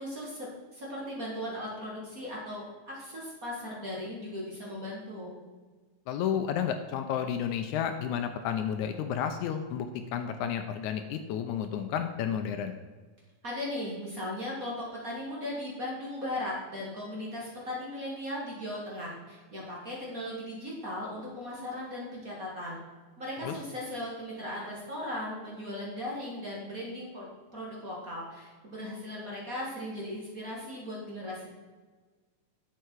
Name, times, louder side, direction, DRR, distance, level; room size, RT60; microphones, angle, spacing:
voice 1, 0.0-5.3 13.4-22.8 23.2-27.3 27.5-31.5, left 1 dB, 30° right, -4 dB, 2.0 m, -37 dB
voice 2, 6.1-12.7 23.4-23.5, left 8 dB, 80° left, 8 dB, 1.9 m, -31 dB
11.0 x 6.9 x 4.6 m, 1.4 s
omnidirectional pair, 3.6 m